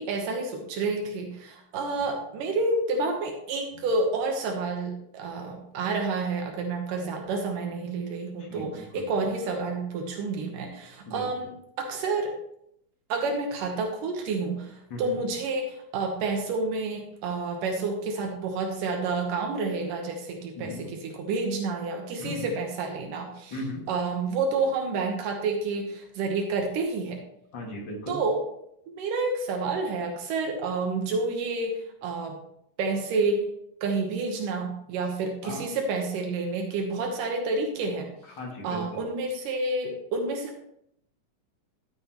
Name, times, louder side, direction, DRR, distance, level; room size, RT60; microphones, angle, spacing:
voice 1, 0.0-11.5 11.8-12.3 13.1-23.5 23.9-27.2 28.1-28.4 29.0-32.4 32.8-33.4 33.8-38.1 38.6-40.6, right 3 dB, 80° right, 2 dB, 2.7 m, -29 dB
voice 2, 8.4-9.1 11.1-11.3 14.9-15.2 20.5-20.9 22.2-22.6 23.5-23.9 27.5-28.2 35.4-35.7 38.2-39.1, left 1 dB, 40° left, -1 dB, 2.3 m, -37 dB
12.5 x 7.9 x 3.0 m, 0.75 s
omnidirectional pair, 3.7 m